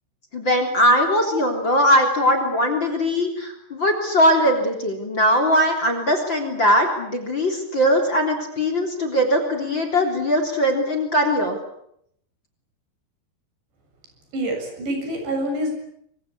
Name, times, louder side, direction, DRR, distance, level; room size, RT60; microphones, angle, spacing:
voice 1, 0.3-11.6, equal, 30° left, 5 dB, 3.8 m, -20 dB
voice 2, 14.3-15.8, right 1 dB, 80° right, 4 dB, 9.3 m, -26 dB
25.0 x 25.0 x 8.4 m, 0.74 s
omnidirectional pair, 5.0 m